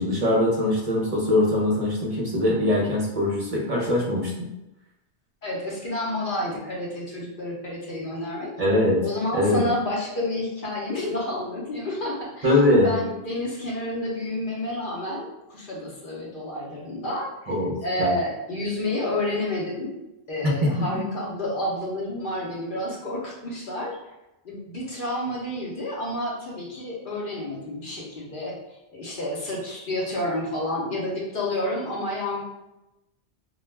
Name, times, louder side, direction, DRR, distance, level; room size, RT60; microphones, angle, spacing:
voice 1, 0.0-4.5 8.6-9.0 9.3-9.6 12.4-12.9 17.5-17.7 18.0-18.1 20.8-21.0, left 1 dB, 45° right, -3 dB, 0.5 m, -22 dB
voice 2, 5.4-8.5 9.0-17.5 17.8-20.0 20.3-24.0 24.4-28.6 28.9-32.4, left 1 dB, 55° left, -3 dB, 0.8 m, -30 dB
2.3 x 2.1 x 3.2 m, 0.94 s
omnidirectional pair, 1.1 m